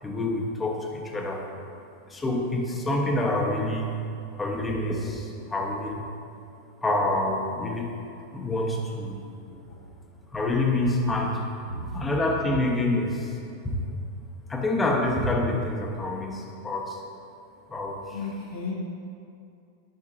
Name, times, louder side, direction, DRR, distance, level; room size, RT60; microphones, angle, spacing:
voice 1, 0.0-1.5 2.1-3.9 4.4-6.0 6.8-7.9 8.3-9.2 10.3-11.4 11.9-13.4 13.6-13.7 14.5-17.0 17.7-18.2, left 2 dB, 15° left, 0 dB, 0.9 m, -27 dB
voice 2, 18.1-18.7, left 3 dB, 60° left, -5 dB, 0.9 m, -33 dB
10.5 x 5.7 x 2.5 m, 2.4 s
figure-of-eight pair, 90°, 0 cm